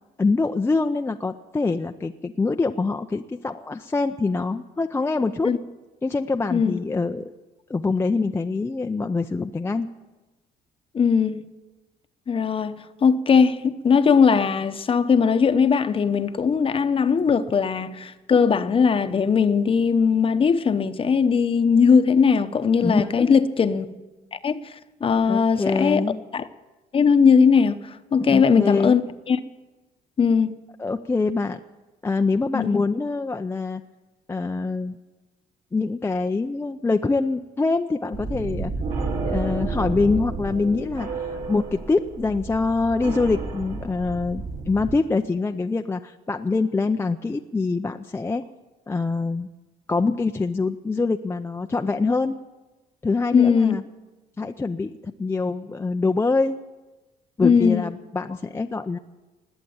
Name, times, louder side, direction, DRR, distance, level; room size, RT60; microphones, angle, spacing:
voice 1, 0.2-5.5 6.0-7.3 7.7-9.9 22.8-23.4 25.3-26.2 28.2-29.0 30.8-31.6 32.0-33.8 34.3-35.0 35.7-38.7 39.2-48.4 48.9-49.5 49.9-52.4 53.0-53.8 54.4-56.6 57.4-59.0, left 3 dB, 15° left, 0.5 m, -24 dB
voice 2, 10.9-11.4 12.3-23.9 24.3-24.7 25.0-26.0 26.3-26.5 26.9-29.0 29.3-29.4 30.2-30.6 32.5-32.7 53.3-53.8 57.4-57.9, left 6 dB, 30° left, 0.9 m, -19 dB
sound 1, 38.1-44.9, right 3 dB, 55° right, 3.6 m, -31 dB
19.5 x 8.2 x 8.7 m
cardioid pair, 110°, 17 cm